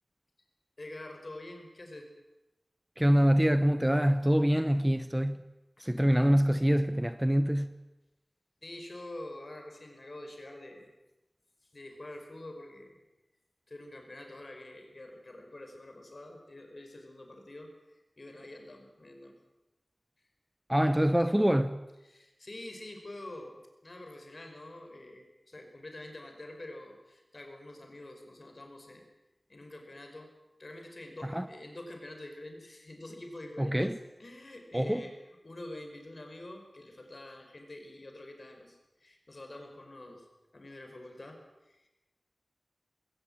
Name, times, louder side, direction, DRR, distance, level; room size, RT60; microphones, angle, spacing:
voice 1, 0.8-2.1 5.8-6.0 8.6-10.9 11.6-13.0 13.7-19.4 22.0-29.0 29.5-30.3 30.6-35.1 35.4-40.3 40.5-41.9, left 1 dB, 50° left, 5.1 m, -46 dB
voice 2, 3.0-5.4 5.8-7.7 20.7-21.8 31.3-31.5 33.6-34.0 34.7-35.0, equal, 10° right, 0.8 m, -25 dB
20.5 x 18.0 x 8.9 m
wide cardioid pair, 75°, 0 cm